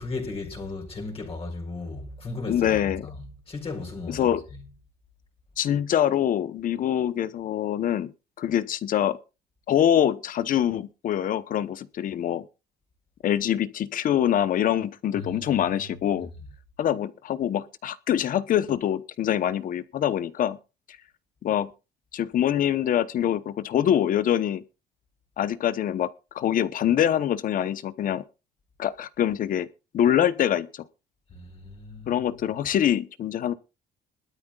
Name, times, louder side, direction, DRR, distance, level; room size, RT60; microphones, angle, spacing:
voice 1, 0.0-3.1 3.5-4.6 15.1-15.7 31.3-32.3, left 3 dB, 35° left, 4.6 m, -36 dB
voice 2, 2.5-3.1 4.1-4.4 5.6-8.1 8.4-9.2 9.7-12.4 13.2-16.3 16.8-20.6 21.4-21.7 22.1-24.6 25.4-28.2 28.8-29.7 29.9-30.7 32.1-33.5, left 10 dB, 55° left, 0.9 m, -24 dB
21.0 x 12.5 x 2.4 m
cardioid pair, 110°, 17 cm